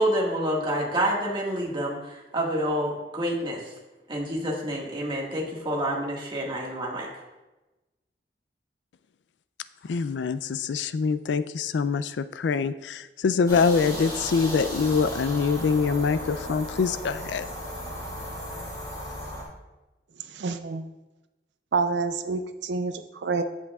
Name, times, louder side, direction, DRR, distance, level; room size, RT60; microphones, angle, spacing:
voice 1, 0.0-3.6 4.1-7.1, right 1 dB, 30° right, -3 dB, 1.7 m, -28 dB
voice 2, 9.8-17.5, left 5 dB, 85° left, 14 dB, 0.4 m, -24 dB
sound 1, 13.5-19.4, equal, 20° left, 2.6 m, -35 dB
voice 3, 20.3-20.9 21.7-23.4, right 4 dB, 80° right, 9 dB, 0.5 m, -28 dB
14.5 x 5.7 x 2.4 m, 1.1 s
head